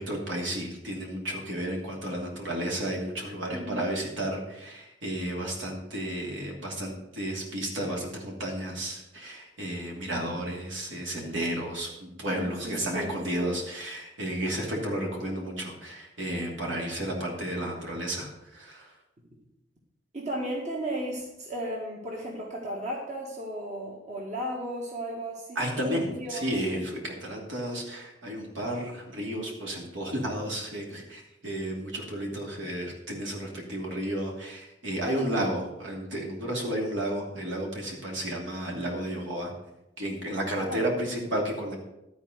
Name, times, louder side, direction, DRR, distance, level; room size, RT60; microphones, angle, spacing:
voice 1, 0.0-18.9 25.5-39.5 40.0-41.8, right 1 dB, 70° right, -1 dB, 2.9 m, -32 dB
voice 2, 3.5-3.9 12.3-13.5 20.1-26.4 35.0-35.4 40.7-40.9, right 1 dB, 40° right, -2 dB, 1.7 m, -35 dB
12.5 x 4.7 x 7.9 m, 0.91 s
head